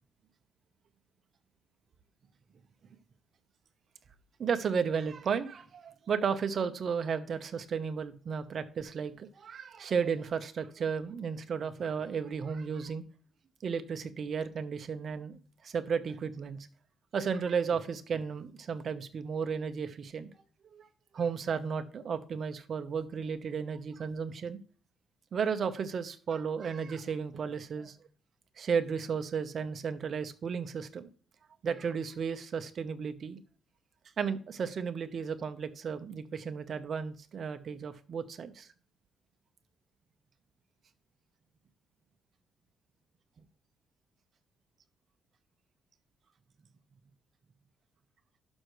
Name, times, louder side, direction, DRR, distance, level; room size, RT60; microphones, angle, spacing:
voice 1, 4.4-13.0 13.6-16.6 17.1-20.3 20.7-20.9 21.1-24.6 25.3-28.0 28.6-31.1 31.6-33.4 34.2-38.7, right 6 dB, 50° right, 10 dB, 1.0 m, -34 dB
11.5 x 6.4 x 3.2 m, 0.41 s
cardioid pair, 130°, 0 cm